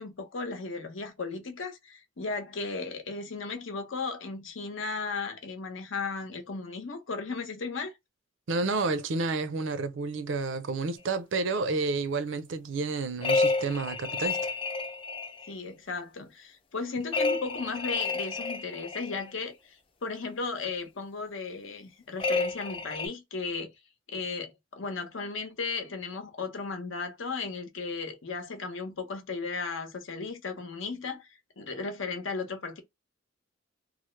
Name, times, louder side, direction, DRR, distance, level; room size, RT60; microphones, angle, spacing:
voice 1, 0.0-7.9 15.4-23.7 24.1-31.3 31.6-32.8, left 4 dB, 80° left, 0.9 m, -35 dB
voice 2, 8.5-14.4, right 3 dB, 75° right, 0.5 m, -30 dB
sound 1, 13.2-15.5 17.1-19.2 22.2-23.1, left 3 dB, 25° left, 0.4 m, -30 dB
3.1 x 2.0 x 3.1 m
head